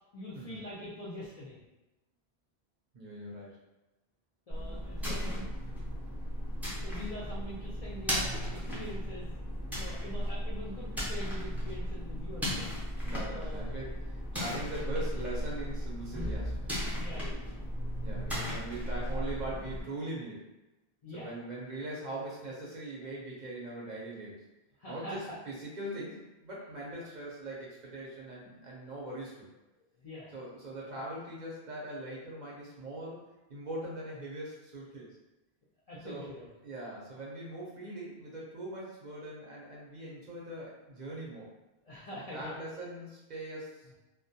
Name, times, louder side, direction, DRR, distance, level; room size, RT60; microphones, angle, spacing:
voice 1, 0.1-1.6 4.5-5.5 6.8-9.3 9.8-12.7 13.3-13.8 16.9-17.5 18.3-18.4 21.0-21.3 21.7-21.8 24.8-25.4 30.0-30.3 30.8-30.9 35.9-36.5 41.9-42.6, equal, 50° left, -8 dB, 0.4 m, -44 dB
voice 2, 2.9-3.6 5.0-5.4 8.7-8.9 13.0-16.7 18.0-20.5 21.1-24.5 24.9-29.5 30.3-33.2 33.5-35.1 36.0-36.3 36.6-41.5 42.2-43.8, right 1 dB, 55° right, -5 dB, 0.6 m, -41 dB
sound 1, 4.5-19.8, equal, ahead, 0.4 m, -35 dB
2.1 x 2.1 x 2.6 m, 1.0 s
omnidirectional pair, 1.0 m